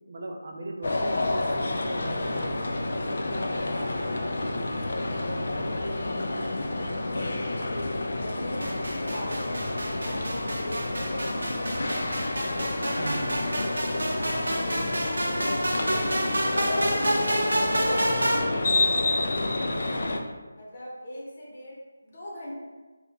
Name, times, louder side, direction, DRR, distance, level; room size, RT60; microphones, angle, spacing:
voice 1, 0.1-5.8 12.9-13.5 18.2-18.4, right 2 dB, 50° right, 3 dB, 0.4 m, -40 dB
sound 1, 0.8-20.2, left 2 dB, 60° left, 0.4 m, -29 dB
voice 2, 6.6-7.6 8.1-8.8 9.1-11.7 14.0-16.9 17.2-20.0 20.6-22.5, equal, 35° left, -5 dB, 0.9 m, -40 dB
sound 2, 8.6-18.4, right 1 dB, 85° right, 0.7 m, -29 dB
2.8 x 2.4 x 3.6 m, 1.2 s
figure-of-eight pair, 170°, 0 cm